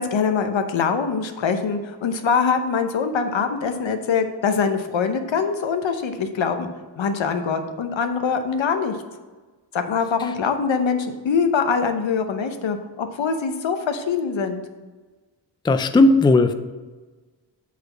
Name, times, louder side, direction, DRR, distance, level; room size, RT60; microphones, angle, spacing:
voice 1, 0.0-6.7 7.0-9.0 9.7-14.6, left 5 dB, 85° left, 7 dB, 0.9 m, -23 dB
voice 2, 15.6-16.5, left 2 dB, 10° left, 10 dB, 0.3 m, -15 dB
8.4 x 4.1 x 6.0 m, 1.3 s
wide cardioid pair, 110°, 44 cm